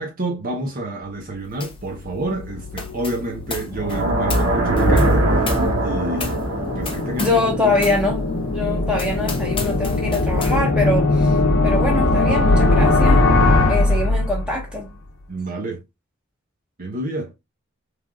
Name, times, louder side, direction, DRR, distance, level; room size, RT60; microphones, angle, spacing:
voice 1, 0.0-7.8 15.3-15.8 16.8-17.3, right 1 dB, 40° right, 0.7 m, -29 dB
sound 1, 1.6-1.9 2.1-7.5 7.8-8.0 8.5-8.6 8.9-10.6, left 4 dB, 25° left, 0.6 m, -34 dB
sound 2, 1.8-14.7, left 2 dB, 85° left, 0.7 m, -21 dB
sound 3, 3.7-8.8, right 1 dB, 70° right, 0.8 m, -22 dB
voice 2, 7.2-11.4 11.6-13.2 13.7-14.9, left 2 dB, 5° right, 1.0 m, -23 dB
3.3 x 2.4 x 2.3 m
head